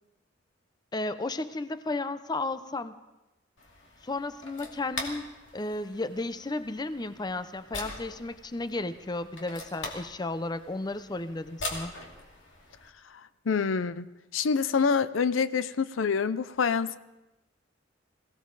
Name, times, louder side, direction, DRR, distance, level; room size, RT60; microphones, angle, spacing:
voice 1, 0.9-3.0 4.0-5.2 5.5-11.9, left 2 dB, 20° left, 12 dB, 0.6 m, -33 dB
sound 1, 3.6-12.9, left 2 dB, 70° left, 2.4 m, -42 dB
voice 2, 13.5-14.1 14.3-17.0, left 5 dB, 90° left, 15 dB, 0.5 m, -26 dB
22.0 x 16.5 x 4.0 m, 0.99 s
head